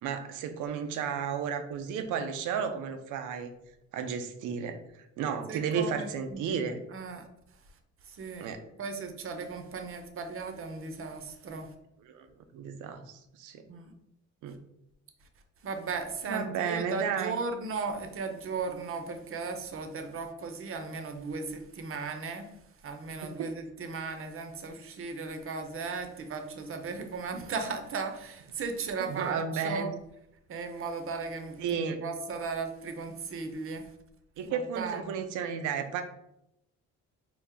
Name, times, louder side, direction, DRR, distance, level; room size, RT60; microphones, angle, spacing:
voice 1, 0.0-3.5 3.9-6.8 8.4-8.6 12.0-12.3 12.5-13.6 14.4-14.6 16.3-17.4 23.2-23.5 29.0-29.9 31.6-32.0 34.4-36.0, right 6 dB, 85° right, 8 dB, 0.5 m, -33 dB
voice 2, 5.5-6.4 6.9-7.3 8.1-8.5 8.8-11.7 13.7-13.9 15.6-22.5 22.8-29.9 30.5-33.8 34.4-35.2, right 4 dB, 45° right, 6 dB, 0.6 m, -36 dB
4.4 x 2.0 x 3.6 m, 0.82 s
cardioid pair, 90°, 30 cm